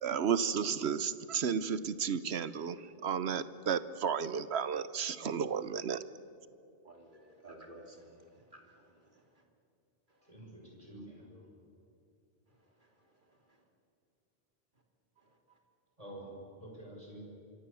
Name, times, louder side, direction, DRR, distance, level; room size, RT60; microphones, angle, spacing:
voice 1, 0.0-2.8 3.0-6.0, right 7 dB, 75° right, 14 dB, 1.1 m, -33 dB
voice 2, 6.8-8.9, right 1 dB, 50° right, 1 dB, 3.1 m, -53 dB
voice 3, 10.3-11.4 16.0-16.3 16.6-17.3, right 1 dB, 35° right, -2 dB, 6.5 m, -48 dB
25.5 x 25.0 x 7.1 m, 2.6 s
omnidirectional pair, 1.1 m